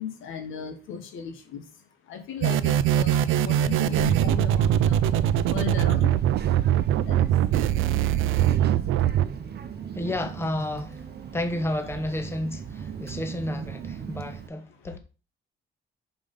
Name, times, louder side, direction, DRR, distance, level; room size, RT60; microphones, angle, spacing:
voice 1, 0.0-1.6 2.1-5.0 5.3-6.1 7.0-7.3, left 7 dB, 85° left, 1.5 m, -36 dB
sound 1, 2.4-9.2, right 11 dB, 85° right, 0.5 m, -22 dB
Child speech kid speaking, 3.7-14.5, right 7 dB, 55° right, 0.9 m, -37 dB
voice 2, 9.9-11.0 11.3-15.0, left 1 dB, 10° left, 1.1 m, -31 dB
5.5 x 4.9 x 5.3 m
cardioid pair, 90°, 20 cm